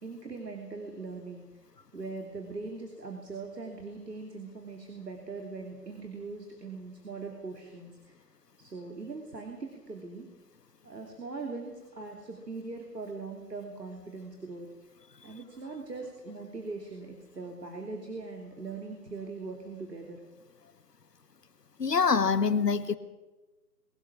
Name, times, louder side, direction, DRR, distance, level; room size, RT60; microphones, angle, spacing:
voice 1, 0.0-1.5 1.9-8.2 8.6-10.3 10.8-14.7 15.2-20.2, right 3 dB, 75° right, 3 dB, 3.3 m, -41 dB
voice 2, 21.8-22.9, left 5 dB, 75° left, 12 dB, 1.8 m, -25 dB
22.5 x 17.5 x 7.4 m, 1.1 s
figure-of-eight pair, 145°, 49 cm